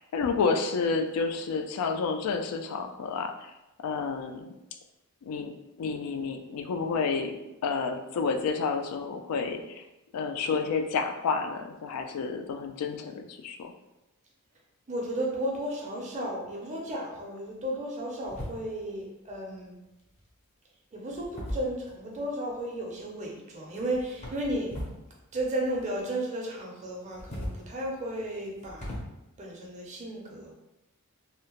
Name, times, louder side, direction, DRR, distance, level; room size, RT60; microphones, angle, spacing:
voice 1, 0.0-3.3 3.8-4.4 5.3-5.5 5.8-7.4 7.6-9.8 10.1-13.7, left 5 dB, 80° left, 6 dB, 0.3 m, -30 dB
voice 2, 14.9-19.8 20.9-24.8 25.3-29.0 29.4-30.5, right 1 dB, 30° right, -1 dB, 0.5 m, -34 dB
sound 1, 18.2-18.9 20.0-20.4 21.1-22.2 23.7-25.0 25.3-26.2 27.0-29.0, equal, 30° left, 0.6 m, -40 dB
2.7 x 2.0 x 2.8 m, 0.94 s
head